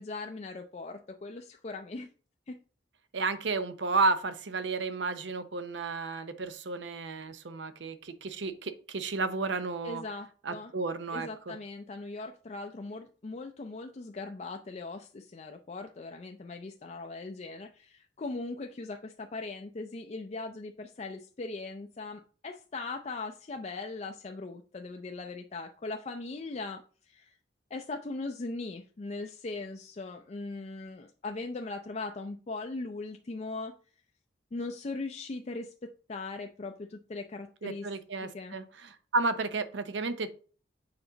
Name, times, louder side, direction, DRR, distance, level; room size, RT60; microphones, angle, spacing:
voice 1, 0.0-2.1 2.5-2.6 9.8-10.7 11.1-26.8 27.1-27.3 27.7-33.7 34.5-37.9 38.3-38.6, left 3 dB, 35° left, 4 dB, 0.4 m, -39 dB
voice 2, 3.1-10.0 10.4-11.5 37.6-40.3, right 3 dB, 80° right, 11 dB, 0.7 m, -32 dB
7.0 x 4.9 x 3.9 m, 0.40 s
head